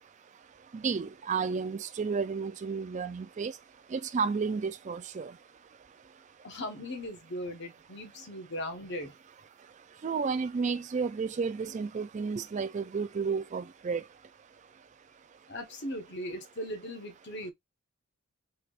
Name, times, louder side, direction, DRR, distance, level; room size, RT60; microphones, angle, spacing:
voice 1, 0.7-3.5 3.9-5.3 10.0-14.0, right 5 dB, 35° right, 0.3 m, -32 dB
voice 2, 6.4-9.2 15.5-17.5, left 1 dB, 50° left, 1.1 m, -38 dB
4.3 x 3.3 x 2.4 m
head